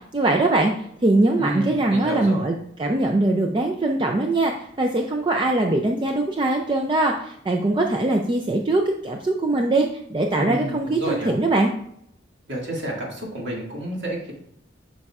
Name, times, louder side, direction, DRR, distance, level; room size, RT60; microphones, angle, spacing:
voice 1, 0.1-0.7 1.0-11.7, right 2 dB, 25° right, 2 dB, 0.4 m, -22 dB
voice 2, 1.4-2.5 10.4-11.3 12.5-14.3, right 1 dB, 60° right, -2 dB, 2.0 m, -30 dB
8.7 x 5.3 x 2.4 m, 0.70 s
head